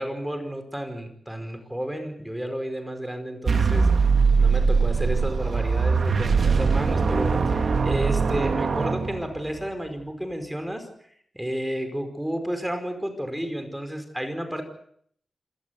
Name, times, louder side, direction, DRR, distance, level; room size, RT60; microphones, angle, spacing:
voice 1, 0.0-3.9 4.4-10.9 11.3-14.6, equal, 5° right, 7 dB, 5.1 m, -31 dB
sound 1, 3.5-9.6, right 5 dB, 65° right, 2.6 m, -21 dB
27.5 x 17.5 x 8.4 m, 0.65 s
wide cardioid pair, 110°, 0 cm